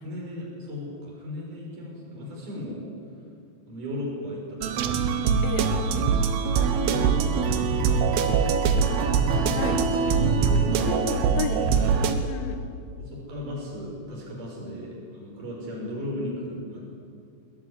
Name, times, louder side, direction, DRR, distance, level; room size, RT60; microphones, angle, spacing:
voice 1, 0.0-2.8 3.7-5.3 6.8-7.6 8.1-9.1 9.4-9.8 10.2-10.9 11.6-11.8 13.0-16.8, left 1 dB, 45° right, -3 dB, 7.0 m, -36 dB
sound 1, 4.6-12.1, right 5 dB, 70° right, 2.8 m, -23 dB
voice 2, 10.9-11.6 12.3-12.6, left 8 dB, 80° left, 7 dB, 3.9 m, -32 dB
21.0 x 17.0 x 9.7 m, 2.3 s
omnidirectional pair, 5.4 m